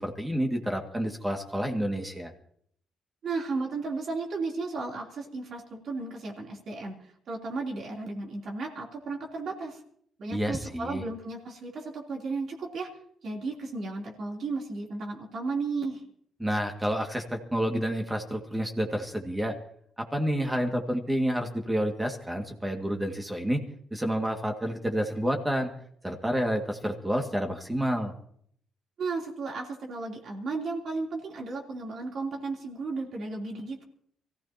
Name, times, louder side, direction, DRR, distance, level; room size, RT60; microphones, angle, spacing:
voice 1, 0.0-2.3 10.3-11.0 16.4-19.5 20.1-23.6 23.9-25.7 26.0-28.2, equal, 10° right, 3 dB, 2.1 m, -29 dB
voice 2, 3.2-6.9 7.3-9.8 10.2-12.9 13.2-16.0 29.0-33.8, right 3 dB, 60° right, 0 dB, 3.4 m, -34 dB
24.0 x 15.5 x 2.9 m, 0.66 s
cardioid pair, 90°, 0 cm